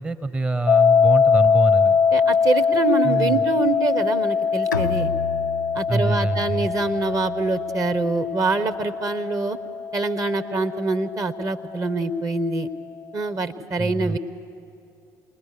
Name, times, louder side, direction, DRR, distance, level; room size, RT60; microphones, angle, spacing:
voice 1, 0.0-2.0 3.0-3.4 5.9-6.7 13.8-14.2, right 2 dB, 10° right, 11 dB, 0.8 m, -25 dB
sound 1, 0.7-11.6, left 6 dB, 35° left, 0.5 m, -22 dB
voice 2, 2.1-5.1 5.7-9.6 9.9-12.7 13.1-14.2, right 3 dB, 35° right, 10 dB, 1.1 m, -25 dB
Bowed string instrument, 4.7-8.2, left 5 dB, 90° left, 0.4 m, -33 dB
28.5 x 20.0 x 6.8 m, 2.6 s
figure-of-eight pair, 55°, 10 cm